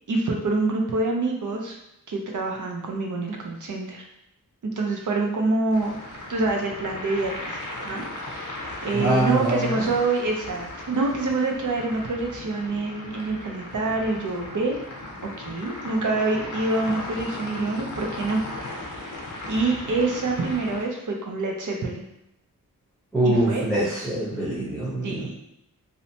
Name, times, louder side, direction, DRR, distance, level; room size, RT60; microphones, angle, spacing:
voice 1, 0.1-1.8 2.1-4.1 4.6-5.9 6.3-7.3 7.8-14.8 15.2-18.4 18.7-22.0 23.2-24.1 25.0-25.4, right 3 dB, 60° right, 1 dB, 0.6 m, -26 dB
sound 1, 5.7-20.8, left 2 dB, 60° left, 0.7 m, -37 dB
voice 2, 8.9-9.8 23.1-25.3, right 1 dB, ahead, -9 dB, 0.9 m, -24 dB
2.7 x 2.1 x 2.8 m, 0.83 s
wide cardioid pair, 65°, 35 cm